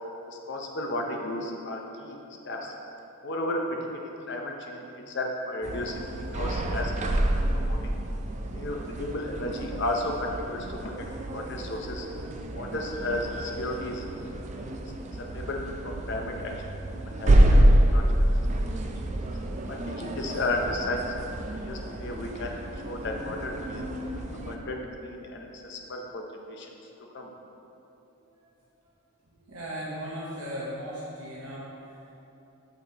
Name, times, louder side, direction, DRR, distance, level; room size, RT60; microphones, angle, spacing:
voice 1, 0.3-2.2 2.4-2.8 3.2-6.9 7.3-8.0 8.5-10.9 11.3-12.1 12.5-14.7 15.2-16.5 16.9-18.3 18.5-19.0 19.7-21.2 21.5-22.5 22.8-23.8 24.4-26.7 27.1-27.3, left 1 dB, 55° left, 1 dB, 0.6 m, -34 dB
sound 1, 5.6-24.6, right 1 dB, 35° right, 0.4 m, -27 dB
voice 2, 29.3-32.0, equal, 75° right, -7 dB, 0.9 m, -37 dB
8.8 x 6.5 x 2.9 m, 2.9 s
head